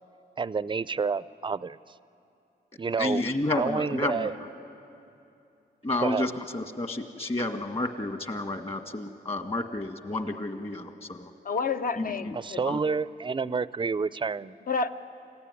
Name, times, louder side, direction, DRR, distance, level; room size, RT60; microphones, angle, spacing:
voice 1, 0.4-1.8 2.8-3.2 3.6-4.3 6.0-6.3 12.3-14.5, right 5 dB, 30° right, 18 dB, 0.5 m, -29 dB
voice 2, 3.0-4.3 5.8-11.3 12.0-12.3 12.7-12.8, left 2 dB, 35° left, 6 dB, 1.8 m, -31 dB
voice 3, 11.4-12.8 13.4-13.6 14.7-14.9, left 4 dB, 55° left, 9 dB, 0.9 m, -30 dB
28.0 x 15.0 x 9.7 m, 2.7 s
wide cardioid pair, 95°, 18 cm